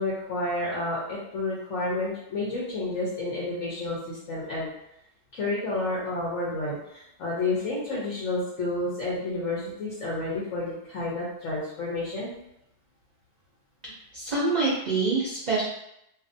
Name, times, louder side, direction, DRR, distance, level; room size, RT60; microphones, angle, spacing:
voice 1, 0.0-4.7 5.3-12.3, left 2 dB, 80° left, -7 dB, 1.2 m, -30 dB
voice 2, 13.8-15.6, right 3 dB, 50° right, -6 dB, 0.5 m, -26 dB
2.7 x 2.4 x 2.5 m, 0.81 s
omnidirectional pair, 1.3 m